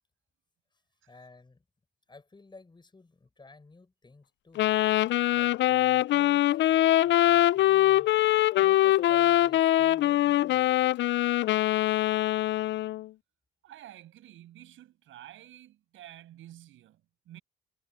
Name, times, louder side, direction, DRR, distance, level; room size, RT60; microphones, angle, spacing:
voice 1, 1.1-1.6 2.1-4.7 5.3-8.1 8.6-11.0, left 3 dB, 25° left, 6.8 m, -53 dB
Wind instrument woodwind instrument, 4.6-13.1, left 14 dB, 65° left, 0.4 m, -23 dB
voice 2, 13.6-17.4, right 13 dB, 80° right, 7.6 m, -50 dB
cardioid pair, 90°, 20 cm